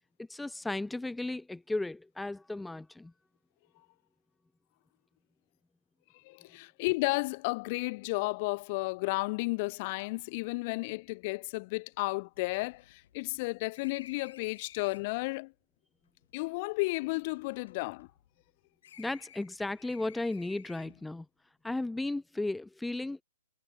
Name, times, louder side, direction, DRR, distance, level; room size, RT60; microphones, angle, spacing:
voice 1, 0.2-3.1 19.0-21.3 21.6-23.2, left 2 dB, 5° left, 0.5 m, -35 dB
voice 2, 6.1-15.5 16.3-18.1, left 25 dB, 35° left, 0.8 m, -33 dB
sound 1, 11.1-11.2 11.4-11.5 11.9-15.2 16.1-18.5 18.8-21.1, left 10 dB, 60° left, 5.3 m, -56 dB
hypercardioid pair, 160°, 0 cm